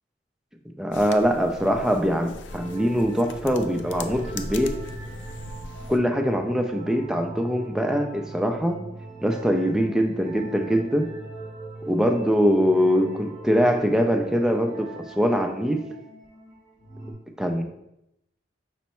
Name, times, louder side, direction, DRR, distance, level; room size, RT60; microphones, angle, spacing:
voice 1, 0.8-4.8 5.9-8.8 9.2-11.1 11.9-15.9 17.4-17.6, equal, 5° right, 3 dB, 0.3 m, -23 dB
sound 1, 0.9-6.0, left 3 dB, 70° left, 0.4 m, -39 dB
sound 2, 2.5-17.1, right 2 dB, 40° right, 0.9 m, -40 dB
5.3 x 2.0 x 4.3 m, 0.84 s
head